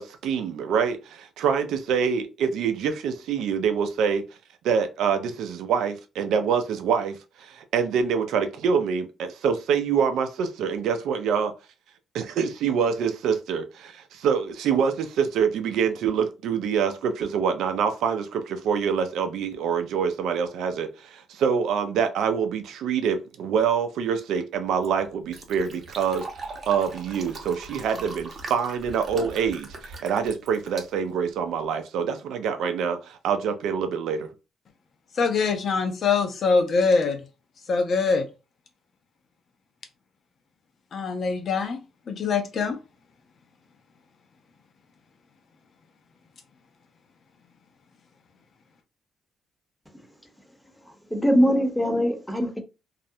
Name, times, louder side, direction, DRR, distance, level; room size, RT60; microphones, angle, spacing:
voice 1, 0.0-4.2 4.6-11.5 12.1-34.3, right 6 dB, 80° right, 0.4 m, -25 dB
Fill (with liquid), 24.5-31.6, right 3 dB, 45° right, 0.7 m, -41 dB
voice 2, 35.1-37.2 37.7-38.3 40.9-42.8, left 4 dB, 55° left, 0.6 m, -23 dB
voice 3, 51.1-52.6, equal, 5° left, 0.7 m, -22 dB
2.4 x 2.0 x 2.7 m
cardioid pair, 90°, 0 cm